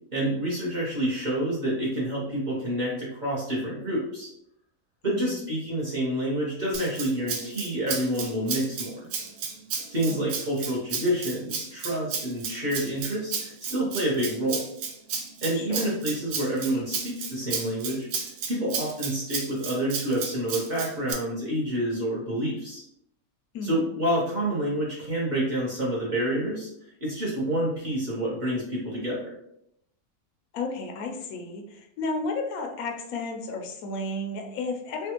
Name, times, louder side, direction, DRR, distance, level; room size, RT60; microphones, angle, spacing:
voice 1, 0.1-4.3 5.0-8.9 9.9-14.7 15.4-18.1 18.5-22.8 23.6-26.7 27.0-29.3, right 1 dB, 40° right, -6 dB, 0.8 m, -28 dB
voice 2, 5.1-5.5 10.1-10.2 15.5-15.9 16.7-16.8 23.5-23.9 30.5-35.1, left 2 dB, 80° left, 3 dB, 1.0 m, -33 dB
Rattle (instrument), 6.7-21.1, right 6 dB, 90° right, 1.1 m, -33 dB
3.3 x 2.4 x 2.9 m, 0.75 s
omnidirectional pair, 1.5 m